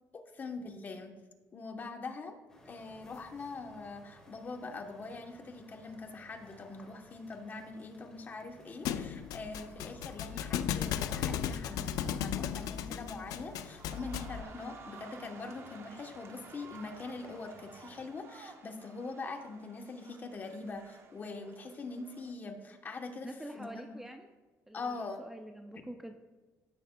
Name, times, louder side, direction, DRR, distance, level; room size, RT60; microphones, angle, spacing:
voice 1, 0.3-1.1 1.5-2.4 2.6-24.0 24.7-25.3, left 3 dB, 30° left, 4 dB, 0.9 m, -43 dB
sound 1, 2.5-18.1, left 1 dB, 10° left, 1.7 m, -59 dB
Thump thud, 8.8-14.4, left 9 dB, 80° left, 0.4 m, -35 dB
sound 2, 13.2-22.3, right 5 dB, 45° right, 0.7 m, -54 dB
voice 2, 23.2-24.3 24.7-26.1, right 1 dB, 5° right, 5 dB, 0.4 m, -46 dB
14.0 x 6.6 x 2.2 m, 1.3 s
cardioid pair, 135°, 6 cm